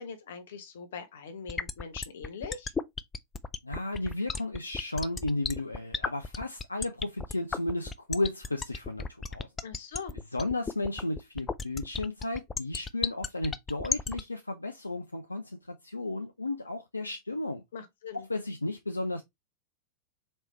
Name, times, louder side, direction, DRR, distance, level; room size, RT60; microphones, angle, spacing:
voice 1, 0.0-2.7 9.6-10.1 17.7-18.3, left 6 dB, 60° left, 1.0 m, -42 dB
sound 1, 1.5-14.2, left 5 dB, 20° left, 0.3 m, -33 dB
voice 2, 3.6-9.0 9.3-9.5 10.3-17.6 18.1-19.2, left 2 dB, 80° left, 0.4 m, -33 dB
4.3 x 3.1 x 3.1 m
figure-of-eight pair, 90°, 0 cm